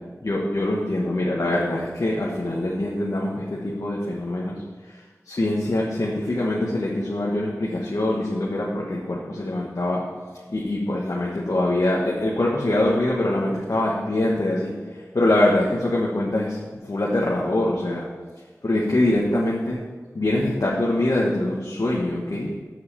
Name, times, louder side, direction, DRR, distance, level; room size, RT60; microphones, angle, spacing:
voice 1, 0.2-4.6 5.2-10.0 10.5-18.1 18.6-19.8 20.1-22.5, left 1 dB, 70° left, -4 dB, 1.4 m, -24 dB
7.4 x 6.0 x 6.7 m, 1.4 s
wide cardioid pair, 40°, 6 cm